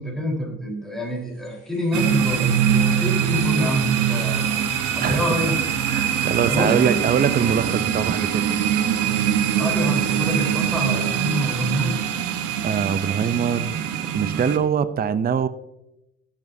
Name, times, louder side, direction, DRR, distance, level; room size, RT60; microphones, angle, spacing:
voice 1, 0.0-4.5 4.9-5.6 6.5-7.0 9.6-12.0, right 1 dB, ahead, -3 dB, 3.8 m, -26 dB
sound 1, 1.2-7.6, left 5 dB, 55° left, 2.9 m, -45 dB
sound 2, 1.9-14.6, right 9 dB, 85° right, 0.9 m, -23 dB
voice 2, 5.9-8.5 12.6-15.5, right 7 dB, 30° right, 13 dB, 0.5 m, -23 dB
15.0 x 7.3 x 2.7 m, 0.90 s
cardioid pair, 90°, 30 cm